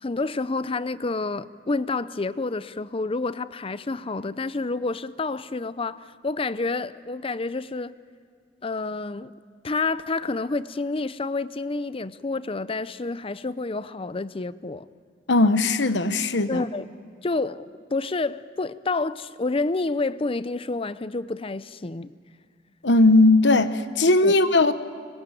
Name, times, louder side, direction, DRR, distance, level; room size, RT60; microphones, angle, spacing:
voice 1, 0.0-7.9 8.6-9.3 9.6-14.9 16.5-16.8 17.2-22.1 24.2-24.3, left 3 dB, 30° left, 0.6 m, -29 dB
voice 2, 15.3-16.7 22.8-24.7, left 2 dB, 70° left, 1.1 m, -18 dB
25.5 x 22.0 x 9.1 m
head